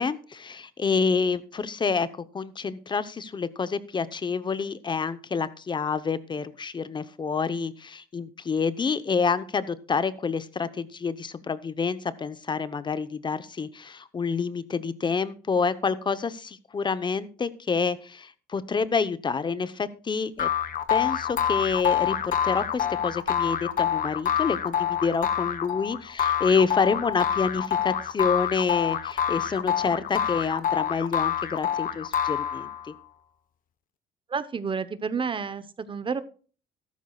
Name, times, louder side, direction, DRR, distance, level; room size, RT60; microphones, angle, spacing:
voice 1, 0.0-2.1 2.3-20.5 20.9-32.9, left 5 dB, 25° left, 14 dB, 0.9 m, -28 dB
sound 1, 20.4-32.9, left 9 dB, 55° left, 1.0 m, -27 dB
voice 2, 34.3-36.2, right 5 dB, 30° right, 14 dB, 0.9 m, -30 dB
13.5 x 12.5 x 2.4 m, 0.39 s
cardioid pair, 110°, 17 cm